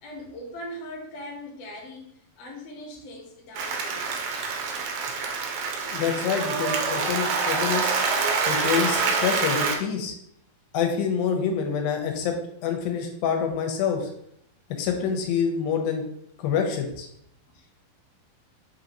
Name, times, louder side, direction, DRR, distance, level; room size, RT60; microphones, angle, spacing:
voice 1, 0.0-4.2 17.5-17.7, left 1 dB, 65° left, -2 dB, 1.6 m, -40 dB
Applause, 3.6-9.8, right 4 dB, 85° right, 2.4 m, -26 dB
voice 2, 5.9-7.9 8.5-10.1 10.7-12.3 12.6-14.1 14.8-16.1 16.4-17.1, left 7 dB, 85° left, 3 dB, 2.4 m, -26 dB
5.5 x 2.6 x 2.9 m, 0.71 s
omnidirectional pair, 4.1 m